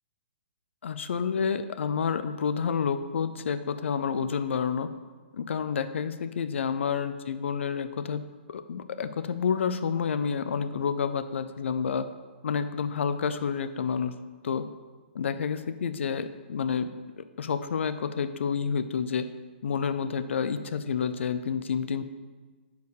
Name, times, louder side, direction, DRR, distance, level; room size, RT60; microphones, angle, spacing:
voice 1, 0.8-4.9 5.3-8.2 8.5-12.1 12.4-14.1 14.4-14.6 15.1-16.9 17.2-19.3 19.6-22.0, left 6 dB, 90° left, 11 dB, 0.4 m, -29 dB
5.3 x 4.6 x 6.3 m, 1.4 s
hypercardioid pair, 180°, 6 cm